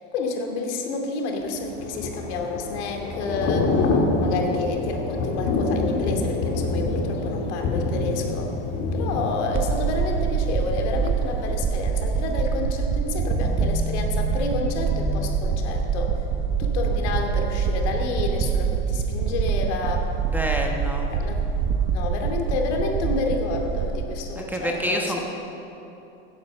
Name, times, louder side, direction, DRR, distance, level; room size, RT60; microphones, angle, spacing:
voice 1, 0.1-3.7 4.2-8.5 8.9-16.2 16.6-20.1 21.1-21.5 21.9-25.2, left 3 dB, 70° left, 3 dB, 2.5 m, -29 dB
Thunder / Rain, 1.6-11.5 11.8-12.1, left 2 dB, 45° left, 2.1 m, -26 dB
sound 1, 9.5-24.0, right 6 dB, 35° right, 1.1 m, -25 dB
sound 2, 13.4-19.6, left 5 dB, 15° left, 0.5 m, -39 dB
voice 2, 20.3-21.1 24.4-25.2, equal, 5° right, 1 dB, 1.2 m, -27 dB
16.0 x 9.2 x 6.7 m, 2.9 s
supercardioid pair, 125°, 35 cm